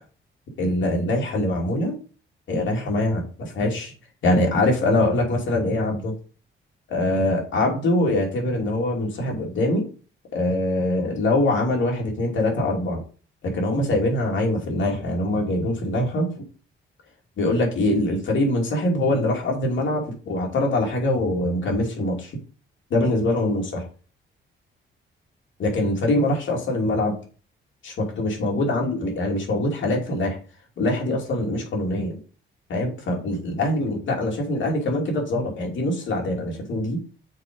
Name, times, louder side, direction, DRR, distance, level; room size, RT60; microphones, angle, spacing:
voice 1, 0.6-1.9 2.5-3.9 4.2-6.1 6.9-9.8 10.3-13.0 13.4-16.3 17.4-22.4 22.9-23.9 25.6-27.1 27.8-30.4 30.8-32.2 32.7-37.0, left 1 dB, 65° left, 0 dB, 2.9 m, -23 dB
6.5 x 5.0 x 5.3 m, 0.38 s
cardioid pair, 130°, 21 cm